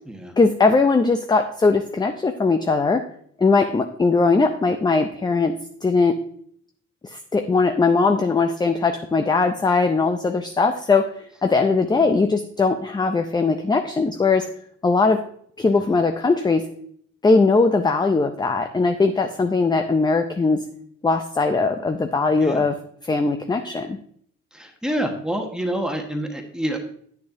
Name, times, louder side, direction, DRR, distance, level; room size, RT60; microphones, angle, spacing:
voice 1, 0.4-3.0 3.4-5.5 5.8-6.2 7.0-11.1 11.4-14.5 14.8-15.2 15.6-16.6 17.2-20.6 21.0-22.8 23.1-24.0, left 4 dB, 15° left, 7 dB, 0.4 m, -20 dB
voice 2, 15.6-15.9 22.4-22.6 24.5-26.8, right 1 dB, ahead, 3 dB, 1.3 m, -28 dB
8.9 x 6.6 x 2.6 m, 0.63 s
cardioid pair, 90°, 30 cm